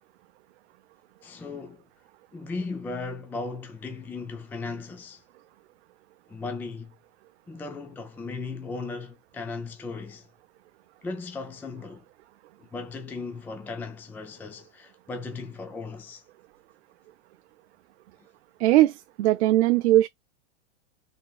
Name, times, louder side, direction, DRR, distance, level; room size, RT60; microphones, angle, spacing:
voice 1, 1.2-1.8 2.3-5.2 6.3-6.9 7.5-10.3 11.0-12.0 12.6-16.2, left 3 dB, 5° left, 0.4 m, -36 dB
voice 2, 18.6-20.1, right 15 dB, 70° right, 0.5 m, -20 dB
3.7 x 3.5 x 2.3 m
supercardioid pair, 135°, 34 cm